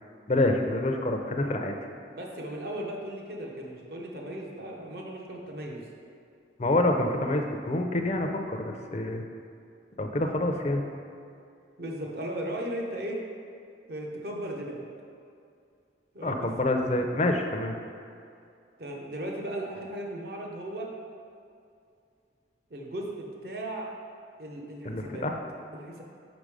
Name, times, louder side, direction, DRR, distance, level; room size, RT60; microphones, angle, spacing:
voice 1, 0.3-1.7 6.6-9.2 10.0-10.8 16.2-17.8 24.8-25.3, left 1 dB, 35° left, 3 dB, 0.5 m, -27 dB
voice 2, 2.1-5.8 11.8-13.2 13.9-14.9 16.1-16.5 18.8-20.9 22.7-23.9 24.4-25.2 25.7-26.0, right 1 dB, 55° right, -1 dB, 0.9 m, -36 dB
6.0 x 5.1 x 4.9 m, 2.5 s
head